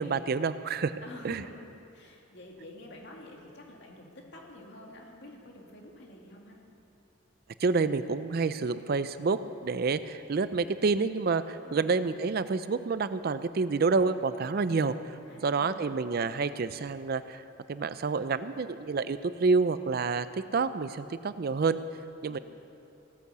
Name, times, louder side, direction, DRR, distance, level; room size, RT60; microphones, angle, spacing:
voice 1, 0.0-0.9 1.2-1.4 7.6-14.9 15.4-17.4 17.7-20.3 20.5-21.8 22.2-22.4, right 4 dB, 50° right, 13 dB, 0.4 m, -28 dB
voice 2, 1.0-1.6 1.9-6.6 11.6-12.0 15.3-15.9, left 1 dB, 60° left, 0 dB, 2.3 m, -49 dB
16.5 x 9.4 x 6.8 m, 2.8 s
head